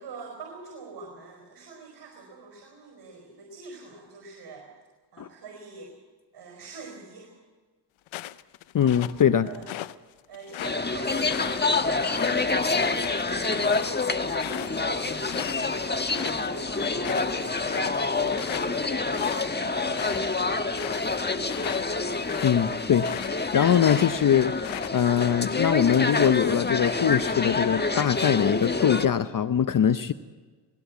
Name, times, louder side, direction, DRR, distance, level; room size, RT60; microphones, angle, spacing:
voice 1, 0.0-4.7 5.1-5.9 6.3-7.3 8.8-9.1 9.4-9.7 10.3-12.9 13.3-14.1 14.6-20.8, right 4 dB, 60° right, 1 dB, 4.7 m, -45 dB
sound 1, 8.1-10.0 10.3-15.7 16.0-16.5 16.8-23.4 23.8-25.2, left 15 dB, 90° left, 0.7 m, -38 dB
voice 2, 8.7-9.5 22.4-24.6 24.9-30.1, left 9 dB, 45° left, 12 dB, 0.7 m, -22 dB
sound 2, 10.6-29.1, left 3 dB, 20° left, 1.4 m, -27 dB
19.0 x 17.0 x 8.3 m, 1.4 s
cardioid pair, 70°, 45 cm